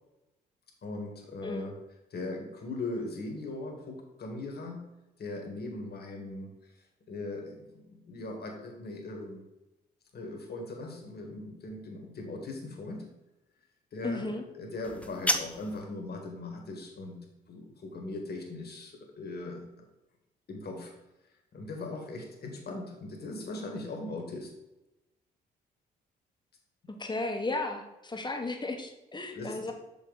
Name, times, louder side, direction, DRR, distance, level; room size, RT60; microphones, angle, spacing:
voice 1, 0.8-1.7 2.1-4.8 5.2-6.5 7.1-9.4 10.1-13.0 13.9-14.3 14.6-17.2 17.5-19.6 20.5-20.9 21.5-24.5 29.3-29.7, left 2 dB, 50° left, 2 dB, 1.9 m, -39 dB
voice 2, 14.0-14.4 26.9-29.7, left 2 dB, 20° left, 4 dB, 1.4 m, -34 dB
sound 1, 14.8-15.8, left 1 dB, 5° left, 0.8 m, -31 dB
6.1 x 5.6 x 4.1 m, 0.98 s
hypercardioid pair, 50°, 20 cm